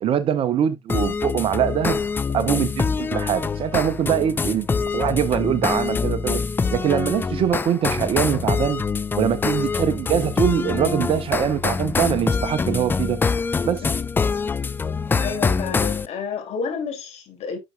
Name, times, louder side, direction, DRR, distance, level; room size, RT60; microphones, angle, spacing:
voice 1, 0.0-2.0 2.3-6.4 6.7-8.8 9.2-13.2 13.6-13.9, right 9 dB, 35° right, 0.8 m, -23 dB
sound 1, 0.9-16.1, left 5 dB, 15° left, 0.4 m, -25 dB
voice 2, 15.2-17.6, left 5 dB, 45° left, 2.5 m, -30 dB
10.5 x 6.0 x 2.2 m
figure-of-eight pair, 70°, 16 cm